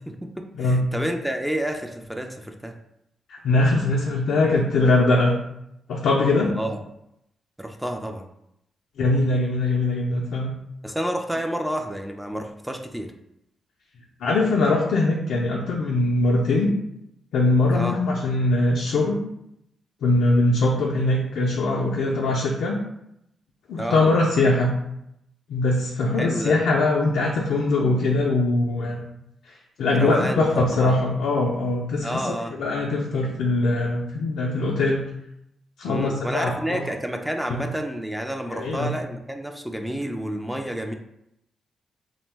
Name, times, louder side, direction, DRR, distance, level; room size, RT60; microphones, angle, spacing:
voice 1, 0.1-2.7 6.4-6.8 7.6-8.2 10.8-13.1 17.7-18.0 23.8-24.0 26.2-26.5 30.0-31.0 32.0-32.6 35.9-40.9, right 1 dB, 5° right, 4 dB, 0.3 m, -29 dB
voice 2, 3.3-5.4 5.9-6.5 9.0-10.5 14.2-16.7 17.3-19.2 20.0-22.8 23.7-24.7 25.5-29.0 29.5-35.0 35.8-36.8 37.5-37.7 38.5-38.9, left 2 dB, 80° left, -2 dB, 0.3 m, -22 dB
2.6 x 2.1 x 3.1 m, 0.81 s
supercardioid pair, 50°, 0 cm